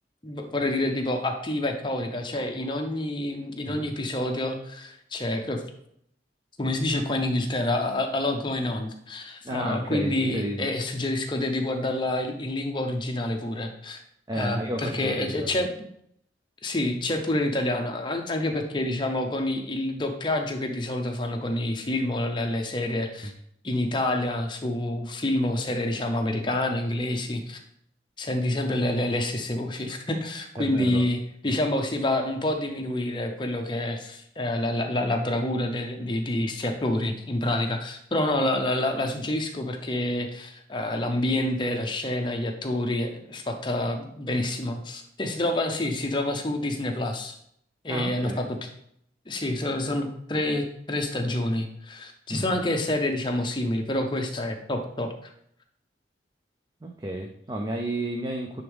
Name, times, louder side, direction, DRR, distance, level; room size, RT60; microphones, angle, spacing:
voice 1, 0.2-5.6 6.6-14.0 14.3-15.7 16.6-23.3 23.6-27.6 28.2-47.3 47.8-48.6 49.3-55.3, left 1 dB, 25° left, 4 dB, 0.7 m, -28 dB
voice 2, 9.4-10.7 14.3-15.6 30.6-31.0 47.9-48.4 52.3-52.5 56.8-58.6, right 1 dB, 20° right, 2 dB, 0.5 m, -32 dB
9.6 x 3.6 x 3.5 m, 0.70 s
head